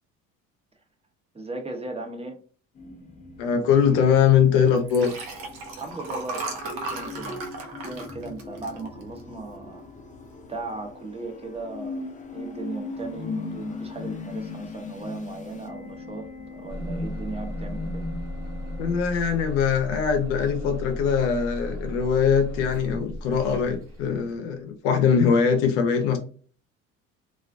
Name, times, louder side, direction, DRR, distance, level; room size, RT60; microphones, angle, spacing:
voice 1, 1.3-2.4 5.8-7.5 7.8-9.8 10.5-12.1 12.3-16.2 16.5-18.0, right 3 dB, 15° right, 0.7 m, -37 dB
sound 1, 2.8-19.0, left 3 dB, 20° left, 0.6 m, -39 dB
voice 2, 3.4-5.1 18.8-26.2, left 7 dB, 80° left, 0.6 m, -22 dB
Liquid, 4.8-9.4 9.9-10.2 10.4-10.5, right 3 dB, 80° right, 0.7 m, -35 dB
Bus / Engine starting, 16.7-24.4, left 1 dB, 35° right, 1.2 m, -36 dB
2.3 x 2.1 x 2.5 m
supercardioid pair, 70°, 37 cm